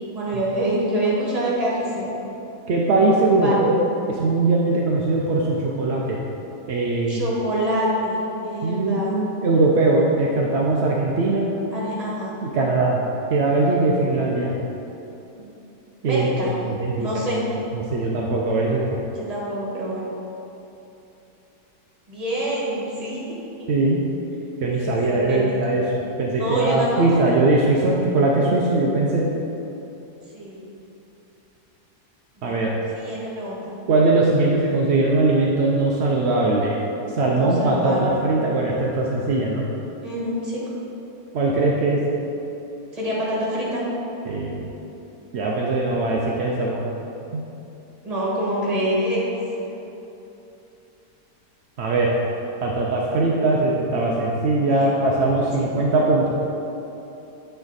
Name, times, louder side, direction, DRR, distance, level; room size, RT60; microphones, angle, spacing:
voice 1, 0.1-2.1 3.3-3.6 7.1-9.3 11.7-12.3 15.4-15.5 16.0-16.5 17.0-17.4 19.1-20.1 22.1-23.2 23.6-23.7 24.8-25.5 26.3-27.4 27.8-27.9 30.3-30.7 32.4-32.6 32.9-33.7 37.3-38.2 40.0-40.6 42.9-43.8 48.0-49.4 49.6-49.8 54.7-55.0 55.6-55.7, right 1 dB, 25° right, -6 dB, 1.4 m, -26 dB
voice 2, 2.7-6.2 6.7-7.2 8.6-11.5 12.4-13.0 13.3-14.6 16.0-17.1 17.7-19.0 23.7-24.0 24.6-25.8 26.2-29.3 32.4-32.7 33.9-36.8 37.2-39.7 41.3-42.0 44.3-44.7 45.3-46.8 47.3-47.4 51.8-52.1 52.6-56.3, right 2 dB, 70° right, -3 dB, 0.6 m, -20 dB
8.8 x 3.4 x 4.0 m, 3.0 s
omnidirectional pair, 1.7 m